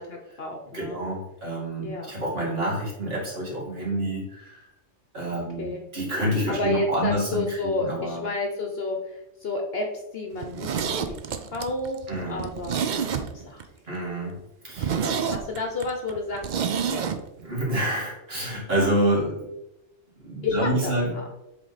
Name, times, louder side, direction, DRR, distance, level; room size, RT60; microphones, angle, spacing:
voice 1, 0.0-1.0 1.8-2.1 5.3-5.8 6.5-9.9 10.1-11.2 11.5-12.0 12.3-13.7 14.9-17.1 20.4-21.2, left 3 dB, 55° left, 2 dB, 0.9 m, -31 dB
voice 2, 0.7-4.6 5.1-8.2 12.1-12.5 13.9-14.4 14.6-15.0 17.4-19.5 20.2-21.2, right 1 dB, 45° right, -6 dB, 2.5 m, -28 dB
Zipper (clothing), 10.4-13.6 14.0-14.1 14.4-14.5 14.8-17.2 17.4-17.5, right 7 dB, 75° right, 0.4 m, -28 dB
7.8 x 3.4 x 4.0 m, 0.91 s
omnidirectional pair, 1.4 m